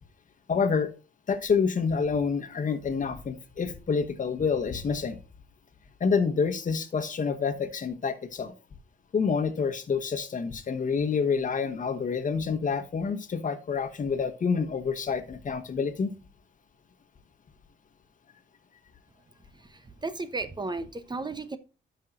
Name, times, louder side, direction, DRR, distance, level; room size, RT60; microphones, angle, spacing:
voice 1, 0.5-0.9 1.3-5.2 6.0-8.5 9.1-16.1, left 5 dB, 40° left, 1.3 m, -28 dB
voice 2, 19.5-21.6, right 3 dB, 20° right, 0.8 m, -35 dB
12.0 x 5.6 x 2.6 m
cardioid pair, 90°, 20 cm